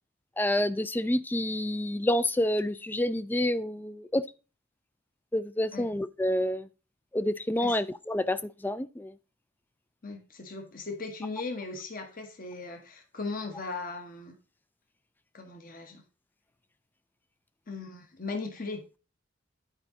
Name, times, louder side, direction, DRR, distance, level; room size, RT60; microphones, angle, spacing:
voice 1, 0.4-4.2 5.3-6.7 7.1-9.1, left 1 dB, 10° left, 0.3 m, -28 dB
voice 2, 10.0-14.4 15.3-16.0 17.7-18.8, left 3 dB, 45° left, 1.1 m, -38 dB
9.7 x 4.8 x 3.8 m
head